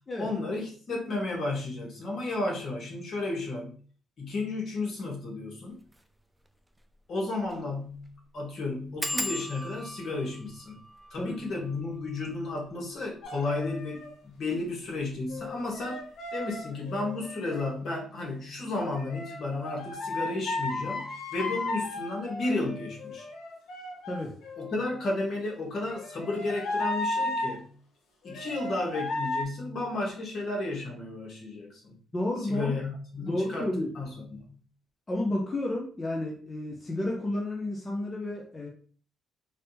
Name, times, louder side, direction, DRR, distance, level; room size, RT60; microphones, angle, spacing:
voice 1, 0.2-3.7 4.2-5.8 7.1-10.8 11.1-23.3 24.6-27.7 28.2-31.9 32.4-32.9 33.1-34.4, left 2 dB, 60° left, -1 dB, 1.4 m, -33 dB
sound 1, 5.8-6.0 6.5-6.6 6.8-6.9 7.4-7.7 7.9-8.0 9.0-14.3 15.0-15.5 15.8-16.1 16.4-16.5, equal, 10° right, 0.3 m, -39 dB
sound 2, 13.2-14.2 15.3-17.7 18.8-24.8 25.9-27.6 28.3-29.4, left 2 dB, 80° left, 0.8 m, -35 dB
voice 2, 24.1-24.4 32.1-32.8 33.2-33.9 35.1-38.7, left 1 dB, 25° left, -1 dB, 0.7 m, -31 dB
3.3 x 2.7 x 2.7 m, 0.43 s
cardioid pair, 90°, 0 cm